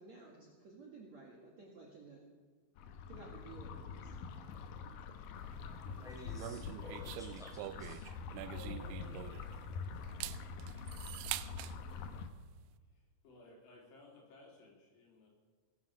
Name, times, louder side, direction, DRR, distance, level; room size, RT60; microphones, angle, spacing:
voice 1, 0.0-2.3 3.1-4.2 8.5-9.3, right 3 dB, 50° right, -2 dB, 2.3 m, -54 dB
sound 1, 2.8-12.3, left 5 dB, 80° left, 1.9 m, -45 dB
voice 2, 5.5-8.2, left 1 dB, ahead, -1 dB, 3.5 m, -53 dB
sound 2, 6.4-9.6 10.0-11.7, right 16 dB, 85° right, 3.0 m, -44 dB
voice 3, 12.9-15.3, left 2 dB, 65° left, -2 dB, 5.6 m, -59 dB
19.0 x 10.5 x 7.0 m, 1.5 s
omnidirectional pair, 5.4 m